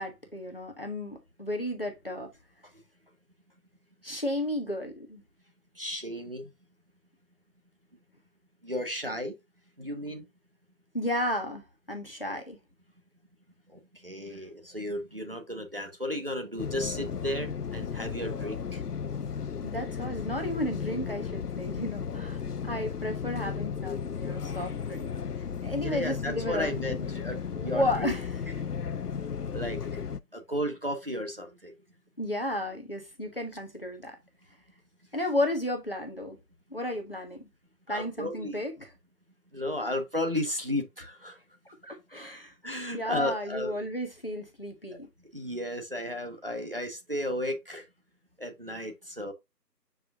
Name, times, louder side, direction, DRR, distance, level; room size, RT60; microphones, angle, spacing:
voice 1, 0.0-2.3 4.0-5.2 10.9-12.6 19.6-22.4 22.6-25.1 25.6-27.1 27.5-28.3 32.2-34.2 35.1-36.4 36.7-37.4 37.9-38.9 41.6-42.5 42.9-45.1, left 1 dB, 35° left, 1.4 m, -33 dB
voice 2, 5.8-6.5 8.6-9.3 9.8-10.2 13.7-18.8 25.8-28.1 29.5-29.8 30.3-31.7 37.9-38.6 39.5-41.4 42.6-43.7 45.3-47.8 48.4-49.3, left 1 dB, 35° right, 1.4 m, -34 dB
sound 1, 16.6-30.2, left 6 dB, 70° left, 0.6 m, -34 dB
8.5 x 5.0 x 2.5 m
figure-of-eight pair, 180°, 50 cm